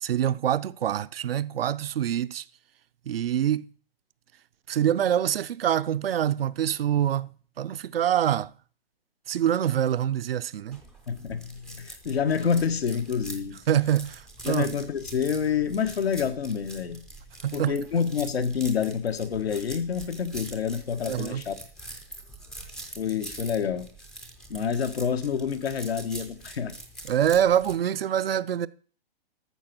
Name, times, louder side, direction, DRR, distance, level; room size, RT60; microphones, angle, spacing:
voice 1, 0.0-2.4 3.1-3.7 4.7-8.5 9.3-10.8 13.7-14.7 17.4-17.8 21.1-21.4 27.1-28.7, right 10 dB, 70° right, 0.6 m, -25 dB
sound 1, 10.7-27.7, right 1 dB, ahead, 0.4 m, -44 dB
voice 2, 11.1-13.6 14.4-17.0 17.5-21.6 23.0-23.9 24.5-26.8, left 7 dB, 90° left, 1.4 m, -28 dB
13.5 x 5.9 x 6.1 m
hypercardioid pair, 160°, 30 cm